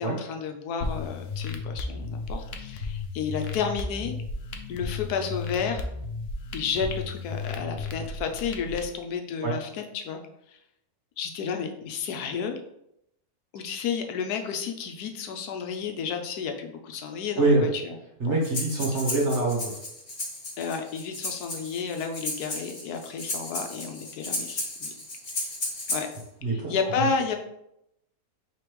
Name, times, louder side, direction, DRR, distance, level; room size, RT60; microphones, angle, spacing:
voice 1, 0.0-4.2 4.7-5.8 6.5-10.2 11.2-12.6 13.5-18.0 18.2-18.4 18.9-19.0 20.6-24.9 25.4-25.5 25.9-26.1 26.5-27.4, left 6 dB, 85° left, 4 dB, 1.2 m, -31 dB
sound 1, 0.8-8.8, left 3 dB, 65° left, 0.6 m, -34 dB
voice 2, 18.2-19.7 26.4-26.7, right 2 dB, 50° right, -1 dB, 1.4 m, -24 dB
Breathing, 18.4-26.2, left 1 dB, 45° left, 1.7 m, -34 dB
5.0 x 3.4 x 3.1 m, 0.79 s
omnidirectional pair, 1.6 m